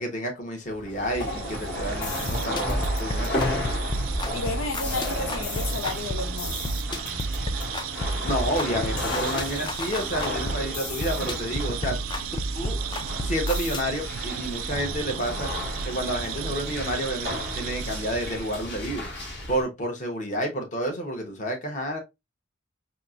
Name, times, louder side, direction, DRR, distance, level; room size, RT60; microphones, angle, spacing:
voice 1, 0.0-3.3 8.2-12.0 12.5-12.8 13.2-15.5 15.8-19.1 19.5-22.0, equal, 40° left, 0.9 m, -30 dB
sound 1, 0.6-19.6, left 1 dB, 60° left, 1.7 m, -33 dB
sound 2, 1.0-18.8, right 8 dB, 90° right, 0.3 m, -35 dB
sound 3, 1.8-13.8, left 1 dB, 25° left, 0.3 m, -32 dB
voice 2, 4.3-6.6, left 3 dB, 90° left, 0.5 m, -32 dB
4.2 x 2.1 x 2.4 m
head